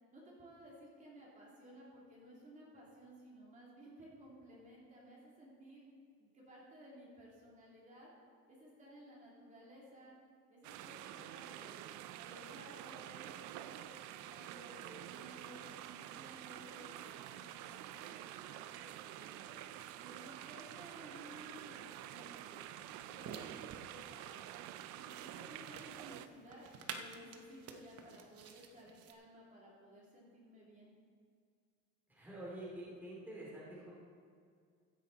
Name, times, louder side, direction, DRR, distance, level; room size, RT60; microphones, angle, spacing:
voice 1, 0.1-5.8 6.2-8.1 8.5-10.1 10.5-11.8 12.2-19.6 20.0-22.7 23.0-24.4 24.9-26.6 26.9-30.9, equal, 25° right, -5 dB, 2.8 m, -57 dB
sound 1, 10.6-26.3, right 12 dB, 80° right, 0.6 m, -49 dB
sound 2, 20.4-29.1, right 6 dB, 55° right, 1.0 m, -53 dB
voice 2, 32.1-33.9, right 1 dB, 5° right, -6 dB, 2.7 m, -47 dB
15.0 x 8.9 x 4.1 m, 2.2 s
cardioid pair, 145°, 29 cm